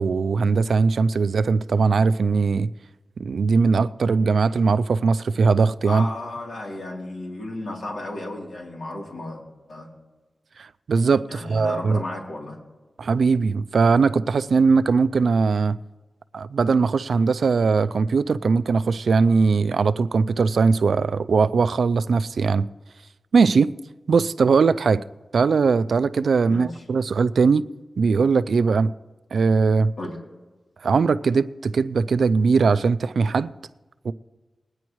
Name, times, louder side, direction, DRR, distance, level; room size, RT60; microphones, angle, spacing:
voice 1, 0.0-2.7 3.2-6.0 10.6-12.0 13.0-15.8 16.3-22.7 23.3-23.7 24.1-25.0 25.3-27.7 28.0-28.9 29.3-29.9 30.8-33.5 34.0-34.1, right 4 dB, 80° right, 0.4 m, -20 dB
voice 2, 5.8-9.4 9.7-9.9 11.3-12.6 26.5-26.8 30.0-30.2, left 2 dB, 85° left, 3.1 m, -33 dB
21.5 x 9.6 x 3.1 m
wide cardioid pair, 85°, 0 cm